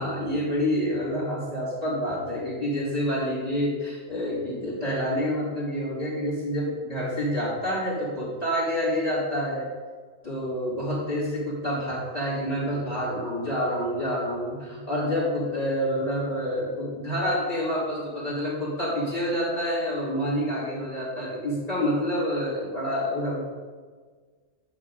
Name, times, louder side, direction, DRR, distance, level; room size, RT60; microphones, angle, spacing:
voice 1, 0.0-9.7 10.2-23.4, equal, 30° left, -7 dB, 3.0 m, -28 dB
10.5 x 6.1 x 3.8 m, 1.5 s
omnidirectional pair, 1.3 m